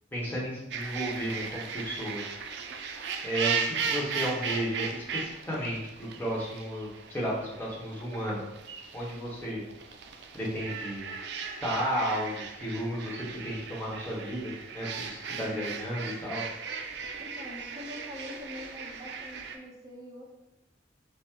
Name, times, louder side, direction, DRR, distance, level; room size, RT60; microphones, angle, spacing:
voice 1, 0.1-2.2 3.2-8.4 8.9-9.6 10.3-11.1 11.6-16.4, equal, 10° left, -6 dB, 0.9 m, -33 dB
sound 1, 0.7-19.6, right 6 dB, 60° right, 0.4 m, -37 dB
voice 2, 17.2-20.3, left 1 dB, 20° right, -2 dB, 0.7 m, -44 dB
4.3 x 2.1 x 3.5 m, 0.94 s
head